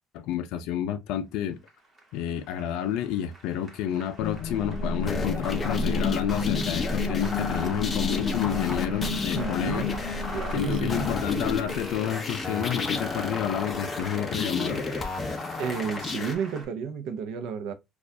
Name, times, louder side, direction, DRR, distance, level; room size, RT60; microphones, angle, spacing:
voice 1, 0.1-1.6 2.1-9.9 10.5-14.8, left 10 dB, 80° left, 0.4 m, -30 dB
Applause, 1.3-16.6, right 2 dB, 25° right, 1.2 m, -46 dB
sound 1, 4.2-12.0, left 4 dB, 60° left, 1.0 m, -31 dB
sound 2, 5.0-16.3, left 4 dB, 25° left, 0.6 m, -32 dB
voice 2, 9.3-9.8 10.3-11.1 15.6-17.7, right 6 dB, 75° right, 0.6 m, -32 dB
4.3 x 2.4 x 2.7 m
cardioid pair, 155°, 0 cm